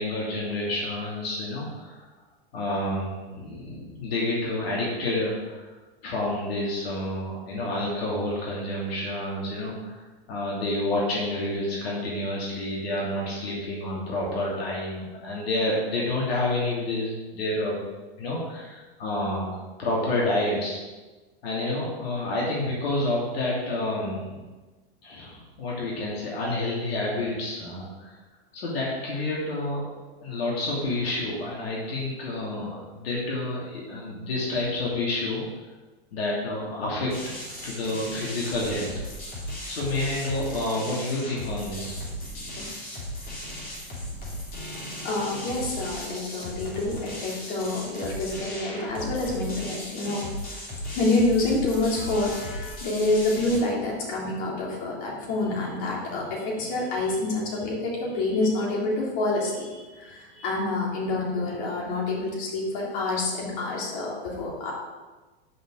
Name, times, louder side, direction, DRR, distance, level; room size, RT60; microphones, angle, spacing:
voice 1, 0.0-2.0 2.5-5.7 6.0-17.8 18.2-20.8 21.4-24.4 25.0-28.2 28.5-29.8 30.2-35.4 36.1-37.2 37.6-38.9 39.7-42.5 44.0-44.3, left 2 dB, 75° left, -5 dB, 2.9 m, -29 dB
sound 1, 37.1-53.6, equal, 30° left, 2.6 m, -36 dB
voice 2, 45.0-50.3 50.9-64.7, left 2 dB, 55° left, -3 dB, 3.4 m, -27 dB
9.9 x 6.2 x 5.1 m, 1.2 s
hypercardioid pair, 130°, 31 cm